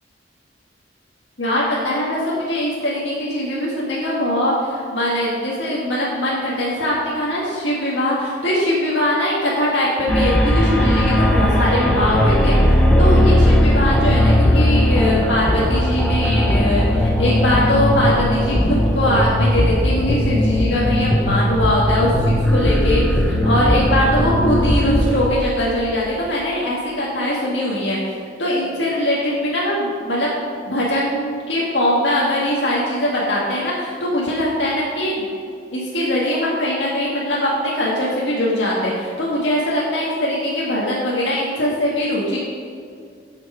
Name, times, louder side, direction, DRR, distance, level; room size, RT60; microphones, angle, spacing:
voice 1, 1.4-12.6 13.0-28.0 28.4-30.3 30.7-35.3 35.7-42.4, left 1 dB, 85° left, -6 dB, 1.9 m, -21 dB
sound 1, 10.1-25.1, left 1 dB, 5° left, 1.0 m, -17 dB
13.0 x 5.8 x 5.0 m, 2.3 s
head